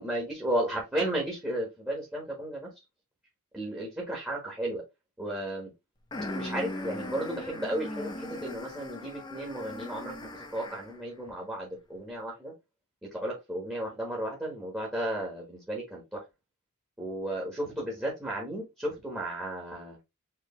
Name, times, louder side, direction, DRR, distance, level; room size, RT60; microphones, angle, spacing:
voice 1, 0.0-2.7 3.5-4.8 5.2-5.7 6.3-12.5 13.0-16.2 17.0-20.0, right 1 dB, 10° right, 1.3 m, -34 dB
sound 1, 6.1-11.0, left 1 dB, 20° left, 0.9 m, -39 dB
4.6 x 3.1 x 3.0 m
head